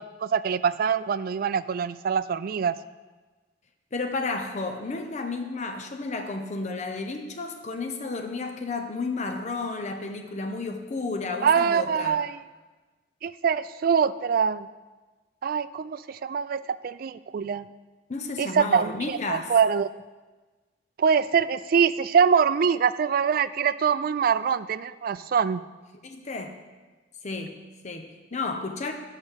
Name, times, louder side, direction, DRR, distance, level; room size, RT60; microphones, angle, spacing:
voice 1, 0.2-2.8 11.4-12.4 13.2-14.7 15.4-17.7 18.4-19.9 21.0-25.6, right 6 dB, 55° right, 14 dB, 0.3 m, -24 dB
voice 2, 3.9-12.2 18.1-19.5 26.0-26.6 27.2-28.9, left 3 dB, 40° left, 5 dB, 0.7 m, -32 dB
8.4 x 7.4 x 6.3 m, 1.3 s
head